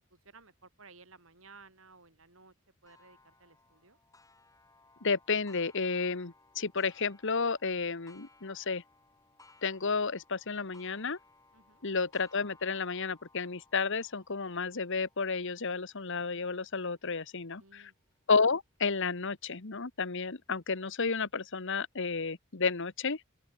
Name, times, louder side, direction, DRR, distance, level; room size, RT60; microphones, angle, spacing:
voice 1, 0.1-2.5 2.8-4.0 11.5-11.8 17.6-18.0, right 4 dB, 70° right, 7.9 m, -57 dB
Clock, 2.9-18.2 18.8-18.9 19.4-19.5 20.5-20.6, left 3 dB, 15° left, 7.3 m, -63 dB
voice 2, 5.0-8.8 9.6-11.2 11.8-17.9 18.3-23.2, left 4 dB, 65° left, 1.4 m, -32 dB
open air
head